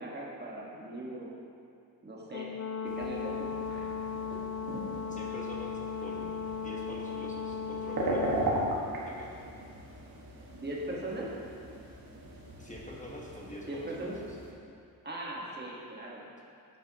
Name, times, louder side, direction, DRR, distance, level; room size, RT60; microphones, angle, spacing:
voice 1, 0.0-1.3 2.0-2.5 2.8-4.1 10.5-11.3 13.7-14.2 15.0-16.2, right 1 dB, 30° right, -3 dB, 1.4 m, -39 dB
Brass instrument, 2.3-8.7, left 6 dB, 45° left, 0.4 m, -36 dB
sound 1, 2.9-14.5, right 1 dB, 70° right, 1.5 m, -38 dB
voice 2, 5.1-8.4 9.0-9.4 12.6-14.1, left 1 dB, 20° left, -3 dB, 1.1 m, -45 dB
9.2 x 9.2 x 2.9 m, 2.5 s
wide cardioid pair, 115°, 36 cm